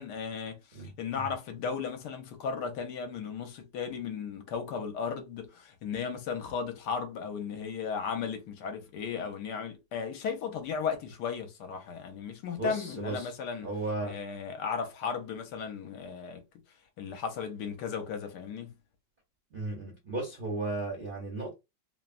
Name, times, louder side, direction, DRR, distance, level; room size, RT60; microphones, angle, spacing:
voice 1, 0.0-13.7 14.0-16.4 17.0-18.7, left 6 dB, 70° left, 1.1 m, -35 dB
voice 2, 12.6-13.3 13.6-14.2 19.5-21.5, right 2 dB, 55° right, 0.5 m, -35 dB
3.0 x 2.1 x 2.4 m
omnidirectional pair, 2.0 m